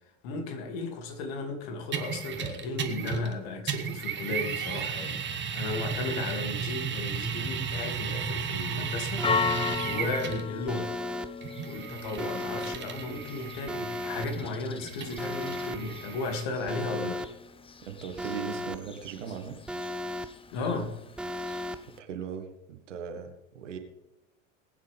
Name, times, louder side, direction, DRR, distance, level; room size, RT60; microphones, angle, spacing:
voice 1, 0.2-10.9 11.6-17.2 20.5-20.9, left 3 dB, 50° left, 4 dB, 2.7 m, -35 dB
sound 1, 1.9-3.4 3.7-10.5 11.4-16.4, right 7 dB, 30° right, 1.8 m, -34 dB
Church bell, 8.2-22.0, left 6 dB, 15° left, 0.9 m, -38 dB
Alarm, 9.2-9.8 10.7-11.3 12.2-12.8 13.7-14.3 15.2-15.8 16.7-17.3 18.2-18.8 19.7-20.3 21.2-21.8, left 1 dB, 5° right, 0.3 m, -35 dB
voice 2, 17.8-19.6 21.9-23.8, right 7 dB, 65° right, 6 dB, 2.0 m, -39 dB
20.5 x 9.4 x 3.6 m, 0.92 s
figure-of-eight pair, 80°, 39 cm